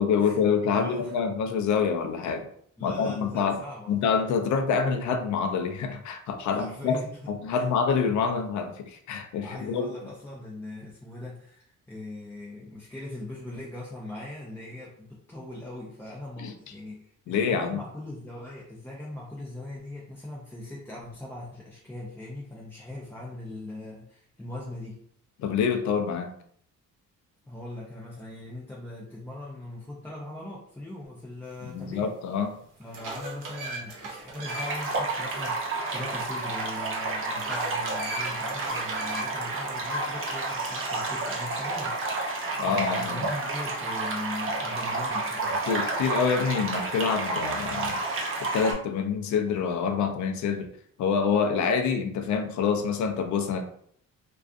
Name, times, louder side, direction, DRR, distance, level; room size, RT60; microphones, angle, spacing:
voice 1, 0.0-2.5 2.8-3.6 3.9-9.8 16.4-16.5 17.3-17.8 25.4-26.3 31.6-32.5 42.6-43.2 45.7-48.0 48.4-50.7 51.0-53.6, left 6 dB, 70° left, 6 dB, 0.5 m, -26 dB
voice 2, 0.7-1.1 2.8-4.0 6.5-7.2 7.5-7.7 9.4-25.0 27.5-32.1 32.8-41.9 42.5-45.6, left 2 dB, 5° left, -6 dB, 0.5 m, -40 dB
sound 1, 32.0-32.1 32.6-35.0 35.3-35.4 37.4-39.5, right 2 dB, 80° right, 0.7 m, -38 dB
sound 2, 34.4-48.7, right 3 dB, 40° right, 0.7 m, -30 dB
2.4 x 2.3 x 2.4 m, 0.64 s
cardioid pair, 95°, 31 cm